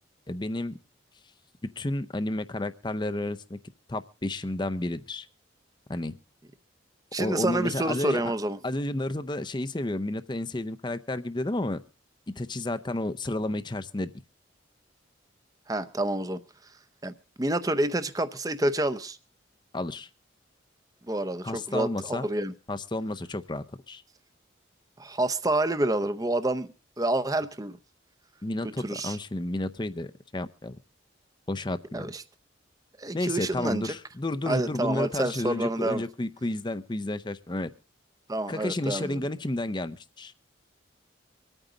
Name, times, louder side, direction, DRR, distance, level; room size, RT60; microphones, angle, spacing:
voice 1, 0.3-0.7 1.8-3.6 3.9-5.3 5.9-6.1 7.2-8.3 8.6-11.8 12.4-14.1 19.7-20.1 21.4-22.2 22.7-24.0 28.4-30.8 31.5-32.1 33.1-37.7 38.5-40.3, left 1 dB, 25° left, 11 dB, 0.6 m, -31 dB
voice 2, 7.1-8.6 15.7-16.4 17.0-19.2 21.1-22.5 25.0-26.7 27.0-27.8 28.6-29.2 31.9-32.2 33.0-33.9 34.5-36.0 38.3-39.2, right 1 dB, 20° right, 12 dB, 0.7 m, -28 dB
24.5 x 9.0 x 3.8 m, 0.34 s
head